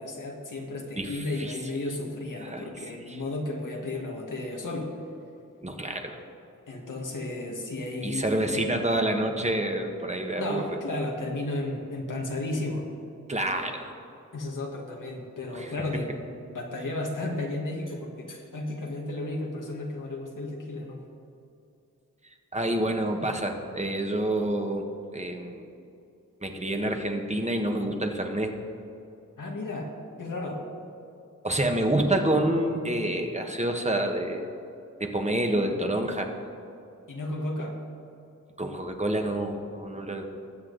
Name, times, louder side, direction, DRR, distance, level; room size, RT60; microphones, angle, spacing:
voice 1, 0.0-4.9 6.7-8.5 10.4-12.9 14.3-16.1 16.5-21.1 29.4-29.9 30.2-30.7 37.1-37.8, left 2 dB, 80° left, -1 dB, 1.8 m, -33 dB
voice 2, 1.0-1.6 2.4-2.7 3.1-3.2 5.6-6.2 8.0-10.6 13.3-13.9 15.5-15.7 22.5-25.7 26.4-28.6 31.4-34.6 35.0-36.3 38.6-40.4, right 1 dB, 20° right, 3 dB, 1.4 m, -28 dB
20.0 x 7.6 x 4.0 m, 2.6 s
wide cardioid pair, 60°, 31 cm